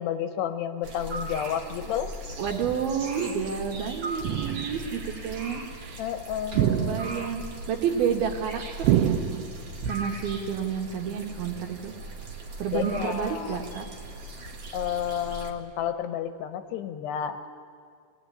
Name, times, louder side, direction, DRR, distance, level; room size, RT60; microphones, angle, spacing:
voice 1, 0.0-2.1 6.0-7.3 12.7-13.6 14.7-17.5, left 9 dB, 75° left, 10 dB, 2.9 m, -31 dB
sound 1, 0.8-15.5, right 2 dB, 45° right, 2.3 m, -39 dB
voice 2, 2.4-6.0 6.5-9.2 9.8-11.9 12.6-13.9, right 7 dB, 65° right, 4 dB, 3.0 m, -30 dB
sound 2, 2.6-3.0 4.2-5.0 6.5-7.5 8.8-9.8, right 11 dB, 80° right, 3.0 m, -27 dB
24.0 x 18.5 x 9.9 m, 2.2 s
omnidirectional pair, 5.2 m